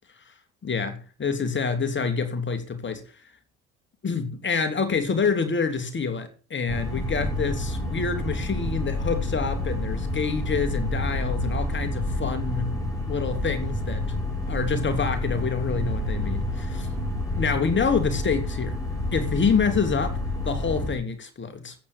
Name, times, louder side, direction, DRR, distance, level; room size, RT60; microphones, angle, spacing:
voice 1, 0.6-3.0 4.0-12.7 13.1-14.0 14.5-16.9 17.3-18.8 19.1-20.2 20.4-21.7, left 5 dB, 30° left, 3.2 m, -27 dB
sound 1, 6.7-20.9, left 1 dB, 10° left, 6.7 m, -29 dB
14.5 x 8.8 x 7.3 m
hypercardioid pair, 65°, 35 cm